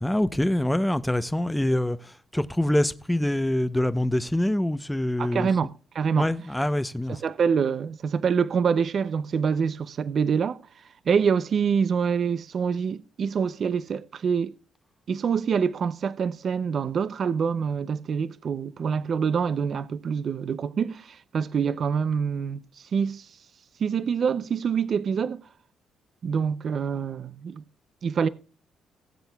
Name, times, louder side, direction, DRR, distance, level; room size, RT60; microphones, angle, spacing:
voice 1, 0.0-5.5 6.2-7.2, left 1 dB, 5° left, 0.7 m, -25 dB
voice 2, 5.2-5.7 5.9-6.3 7.2-10.6 11.1-14.5 15.1-23.3 23.8-25.4 26.2-27.6 28.0-28.3, right 6 dB, 55° right, 0.5 m, -26 dB
18.5 x 7.8 x 2.3 m
cardioid pair, 90°, 0 cm